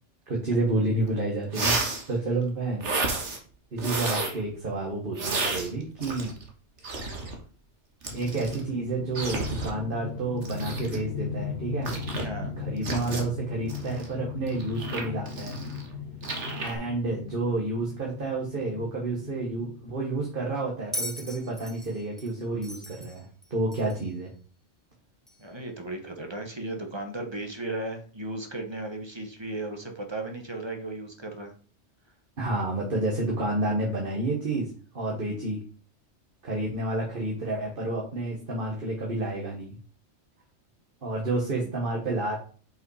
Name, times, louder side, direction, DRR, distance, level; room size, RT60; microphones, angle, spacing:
voice 1, 0.3-1.8 2.1-2.9 3.7-6.3 6.8-7.1 8.1-11.9 12.6-15.5 16.6-23.3 23.5-24.3 32.4-35.6 36.4-39.7 41.0-42.4, right 2 dB, 50° right, -2 dB, 1.7 m, -30 dB
sound 1, 1.0-1.1 1.5-2.1 2.8-3.4 3.8-4.4 5.1-6.5 6.8-7.3 8.0-8.6 9.1-9.7 10.4-11.0 11.8-12.3 12.8-13.2 13.7-15.9 16.2-16.7, right 3 dB, 75° right, 1.7 m, -31 dB
sound 2, 8.1-20.3, left 5 dB, 65° left, 1.4 m, -38 dB
voice 2, 12.2-12.5 25.4-31.5 35.2-35.4 41.2-41.7, right 2 dB, 25° right, 4 dB, 1.2 m, -36 dB
Bell, 20.9-24.1 25.3-25.4, equal, ahead, 0.8 m, -38 dB
5.6 x 5.5 x 4.8 m, 0.41 s
omnidirectional pair, 1.2 m